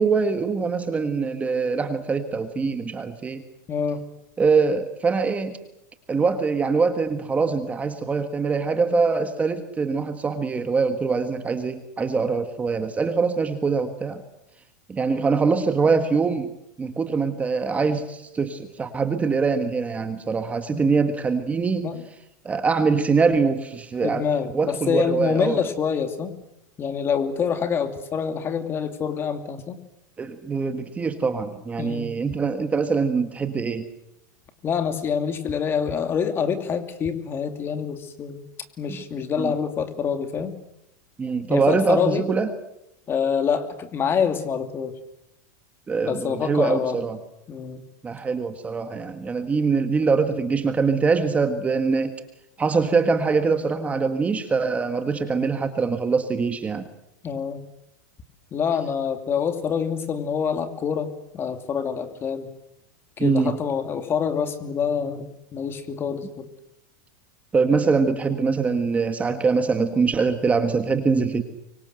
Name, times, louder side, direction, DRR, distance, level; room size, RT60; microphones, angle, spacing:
voice 1, 0.0-3.4 4.4-5.6 6.1-14.2 14.9-16.5 16.8-21.9 22.5-24.2 24.5-25.6 30.2-33.9 39.4-39.5 41.2-42.5 45.9-47.2 48.0-52.2 52.6-56.9 63.2-63.6 67.5-71.4, right 4 dB, 15° right, 8 dB, 1.6 m, -23 dB
voice 2, 3.7-4.0 20.7-20.9 21.8-22.0 24.0-26.3 26.8-29.8 31.8-32.1 34.6-38.5 38.8-40.5 41.5-42.3 43.1-44.9 46.0-47.0 47.5-47.8 57.2-57.6 58.5-62.5 63.2-66.5, left 7 dB, 25° left, 9 dB, 2.5 m, -26 dB
24.5 x 24.5 x 7.9 m, 0.84 s
supercardioid pair, 145°, 10 cm